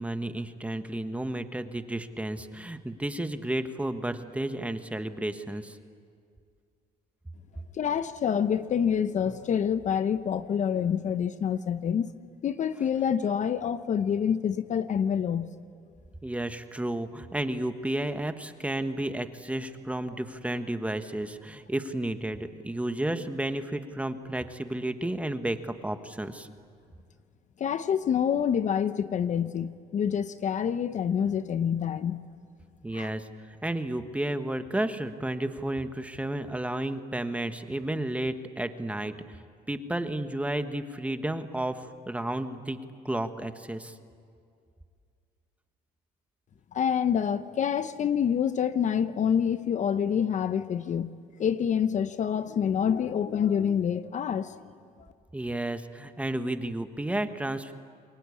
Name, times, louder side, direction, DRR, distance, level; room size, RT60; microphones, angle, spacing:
voice 1, 0.0-5.8 16.2-26.5 32.8-39.4 39.7-42.8 43.0-44.0 55.3-57.7, right 1 dB, 10° right, 8 dB, 1.4 m, -32 dB
voice 2, 7.8-12.1 12.4-15.5 27.6-32.2 32.9-33.1 46.7-51.1 51.4-54.6, left 8 dB, 45° left, 12 dB, 0.8 m, -27 dB
28.5 x 22.0 x 8.5 m, 2.2 s
cardioid pair, 110°, 17 cm